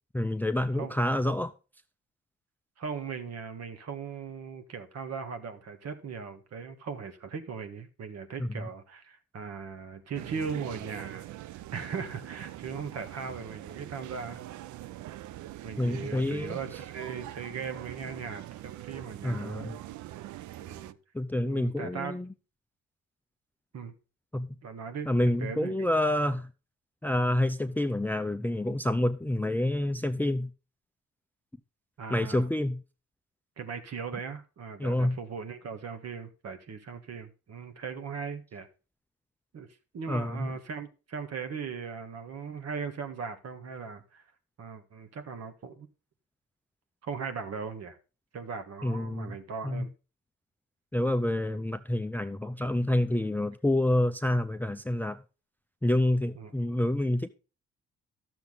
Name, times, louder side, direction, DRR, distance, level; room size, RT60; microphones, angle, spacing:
voice 1, 0.1-1.5 8.4-8.6 15.8-16.6 19.2-19.8 21.1-22.3 24.3-24.6 25.1-26.5 27.0-30.5 32.1-32.8 34.8-35.2 40.1-40.5 48.8-49.4 49.6-49.9 50.9-55.2 55.8-57.3, left 1 dB, 5° left, 0.5 m, -28 dB
voice 2, 2.8-14.4 15.6-19.7 20.6-21.0 21.4-22.2 23.7-23.9 24.6-25.1 25.4-25.7 32.0-32.5 33.6-38.7 39.5-39.7 39.9-44.2 44.6-45.9 47.0-48.0 48.3-49.9 51.5-51.6 56.3-56.5, right 6 dB, 55° right, 1.6 m, -38 dB
sound 1, 10.1-20.9, right 14 dB, 75° right, 0.5 m, -43 dB
12.0 x 7.0 x 4.0 m
cardioid pair, 90°, 30 cm